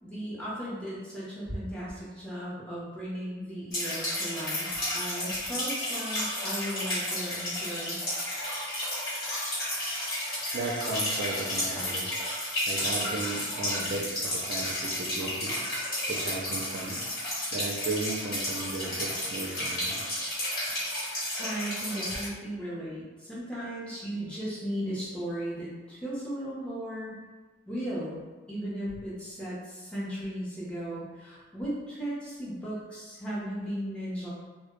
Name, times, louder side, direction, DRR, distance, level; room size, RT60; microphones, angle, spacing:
voice 1, 0.0-4.7 4.9-8.1 21.4-27.2 27.7-28.2 28.5-34.3, equal, 5° left, -9 dB, 0.6 m, -36 dB
sound 1, 3.7-22.2, left 1 dB, 50° left, 1.1 m, -32 dB
voice 2, 10.5-12.1 12.7-15.6 16.1-17.0 17.5-20.0, right 3 dB, 55° right, -3 dB, 0.3 m, -35 dB
2.1 x 2.0 x 3.0 m, 1.3 s
head